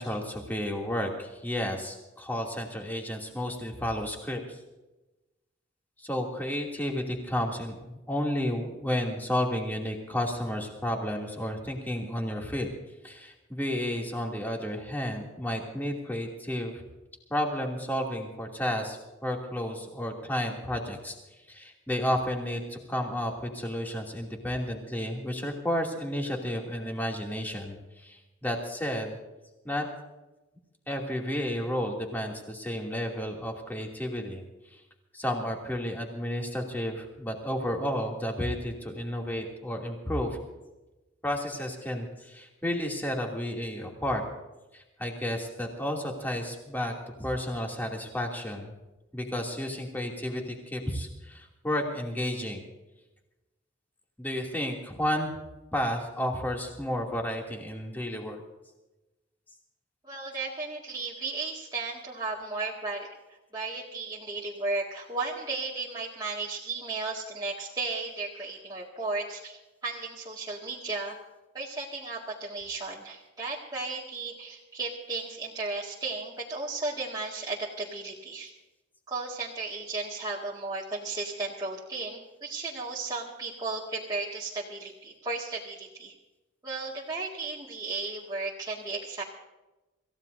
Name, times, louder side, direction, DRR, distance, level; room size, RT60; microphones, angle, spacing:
voice 1, 0.0-4.6 6.0-12.7 13.0-16.8 17.3-21.1 21.5-29.2 29.6-29.9 30.9-34.4 34.7-34.8 35.1-40.4 41.2-44.2 44.7-46.9 47.2-48.7 49.1-52.6 54.2-55.3 55.7-58.4, equal, 10° left, 0 dB, 2.6 m, -32 dB
voice 2, 60.0-63.1 63.5-71.2 71.5-78.5 79.1-86.1 86.6-89.2, right 3 dB, 20° right, -6 dB, 2.0 m, -35 dB
27.0 x 15.5 x 2.7 m, 1.1 s
head